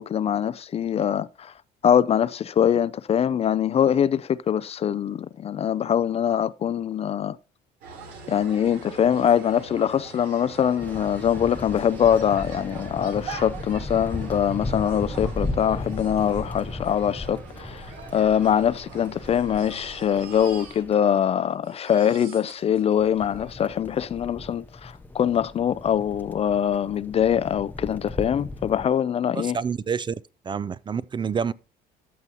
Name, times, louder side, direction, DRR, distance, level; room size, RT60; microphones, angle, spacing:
voice 1, 0.0-1.5 1.8-7.4 8.3-29.6, left 9 dB, 40° left, 0.4 m, -23 dB
sound 1, 7.8-20.6, right 5 dB, 85° right, 3.4 m, -42 dB
sound 2, 10.8-20.9 22.7-28.9, left 2 dB, 10° left, 0.8 m, -36 dB
Crying sobbing, 17.2-17.3 17.5-17.6 18.3-21.2 21.5-24.1 24.9-25.0 25.4-25.5, right 6 dB, 60° right, 2.5 m, -48 dB
voice 2, 29.3-30.1 30.4-31.5, right 6 dB, 30° right, 0.4 m, -28 dB
14.0 x 5.4 x 2.9 m
cardioid pair, 110°, 17 cm